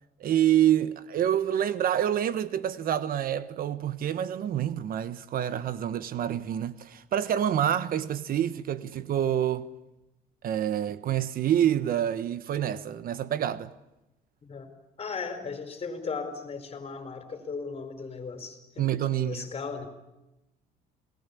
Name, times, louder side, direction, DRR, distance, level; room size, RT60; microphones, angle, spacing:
voice 1, 0.2-9.7 10.4-13.7 18.8-19.4, right 10 dB, 60° right, 1.2 m, -27 dB
voice 2, 14.4-14.7 15.0-18.9 19.1-19.9, left 5 dB, 35° left, 4.7 m, -36 dB
28.5 x 19.5 x 8.5 m
cardioid pair, 110°, 17 cm